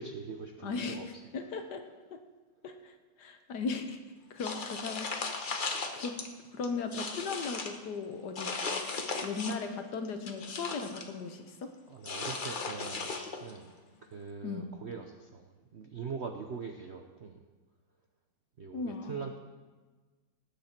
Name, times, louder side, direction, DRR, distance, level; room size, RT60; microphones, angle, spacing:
voice 1, 0.0-1.1 11.9-13.1 13.4-13.7 14.0-17.5 18.6-19.4, right 5 dB, 60° right, 4 dB, 0.7 m, -42 dB
voice 2, 0.6-1.8 2.1-2.2 2.6-4.0 4.3-5.5 5.9-6.1 6.5-8.5 9.2-11.7 14.4-14.7 18.7-19.2, left 4 dB, 60° left, 7 dB, 1.5 m, -37 dB
sound 1, 4.4-6.3 6.6-7.8 8.4-9.7 10.0-11.1 12.0-13.6, left 4 dB, 35° left, 0.8 m, -37 dB
18.5 x 8.4 x 4.4 m, 1.3 s
omnidirectional pair, 2.1 m